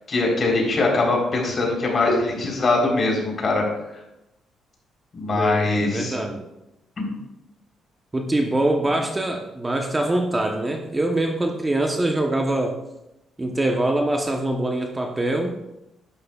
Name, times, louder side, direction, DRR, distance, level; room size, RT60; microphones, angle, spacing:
voice 1, 0.1-3.6 5.1-6.1 7.0-7.1, left 2 dB, 40° left, -1 dB, 3.8 m, -22 dB
voice 2, 5.3-6.4 8.1-12.8 13.4-15.6, right 1 dB, 20° right, 3 dB, 1.0 m, -24 dB
11.0 x 11.0 x 2.4 m, 0.90 s
cardioid pair, 90°, 0 cm